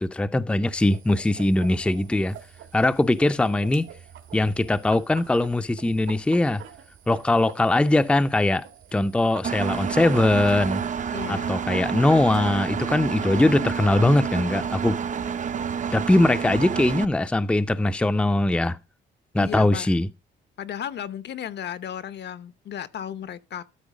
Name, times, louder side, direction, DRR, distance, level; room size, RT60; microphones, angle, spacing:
voice 1, 0.0-2.4 2.7-3.9 4.3-6.6 7.1-8.7 8.9-10.8 11.3-15.0 15.9-18.8 19.3-20.1, left 2 dB, 5° left, 0.5 m, -21 dB
sound 1, 0.7-10.9, right 9 dB, 80° right, 1.7 m, -46 dB
Engine, 9.4-17.0, right 7 dB, 40° right, 0.6 m, -29 dB
voice 2, 11.1-11.5 19.3-19.9 20.6-23.6, left 9 dB, 60° left, 0.9 m, -34 dB
12.5 x 4.5 x 5.0 m
cardioid pair, 90°, 20 cm